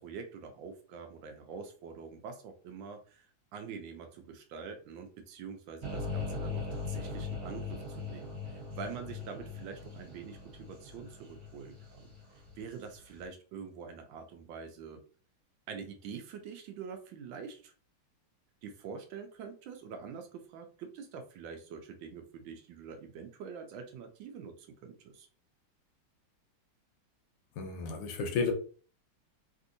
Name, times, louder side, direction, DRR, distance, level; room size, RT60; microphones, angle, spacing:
voice 1, 0.0-15.0 15.7-17.7 18.6-25.3, right 6 dB, 75° right, 1.2 m, -45 dB
sound 1, 5.8-12.9, left 4 dB, 50° right, 1.5 m, -40 dB
voice 2, 27.6-28.5, left 5 dB, 75° left, 1.3 m, -32 dB
3.4 x 2.6 x 2.5 m
omnidirectional pair, 2.2 m